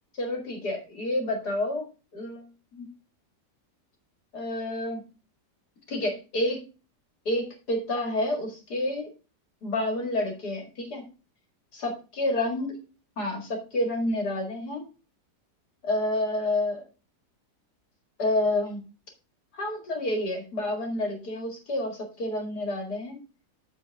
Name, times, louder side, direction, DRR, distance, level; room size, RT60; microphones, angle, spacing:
voice 1, 0.1-1.9 2.1-2.9 4.3-5.0 5.9-6.6 7.3-9.1 9.6-11.1 11.7-12.8 13.2-14.8 15.8-16.8 18.2-18.8 19.5-23.2, left 1 dB, 65° left, 3 dB, 2.5 m, -29 dB
8.0 x 7.2 x 3.5 m, 0.33 s
omnidirectional pair, 1.9 m